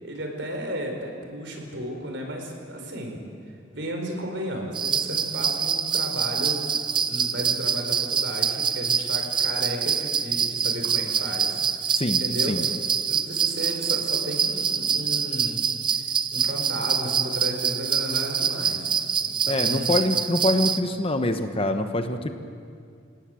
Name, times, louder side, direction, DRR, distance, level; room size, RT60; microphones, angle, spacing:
voice 1, 0.0-3.2 3.7-6.6 7.0-11.6 12.2-12.6 13.0-15.6 15.9-19.0 19.2-19.9, right 1 dB, 60° right, 3 dB, 4.5 m, -33 dB
sound 1, 4.7-20.8, right 7 dB, 25° right, 0.7 m, -25 dB
voice 2, 19.5-22.3, left 1 dB, 30° left, 7 dB, 1.2 m, -24 dB
29.5 x 17.5 x 7.8 m, 2.3 s
head